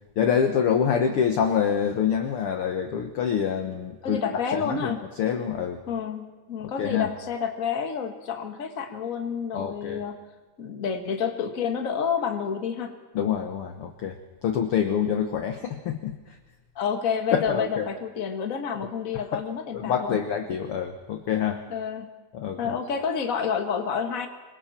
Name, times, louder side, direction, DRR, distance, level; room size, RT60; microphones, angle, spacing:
voice 1, 0.1-4.2 4.5-5.8 6.8-7.1 9.5-10.0 13.1-16.4 17.3-17.9 19.1-19.4 19.7-21.6 22.3-22.8, left 8 dB, 60° left, 6 dB, 1.5 m, -26 dB
voice 2, 4.0-5.0 5.9-10.2 10.6-12.9 16.7-20.2 21.7-22.1 22.6-24.3, left 6 dB, 35° left, 5 dB, 1.6 m, -29 dB
26.0 x 23.0 x 4.4 m, 1.3 s
omnidirectional pair, 3.9 m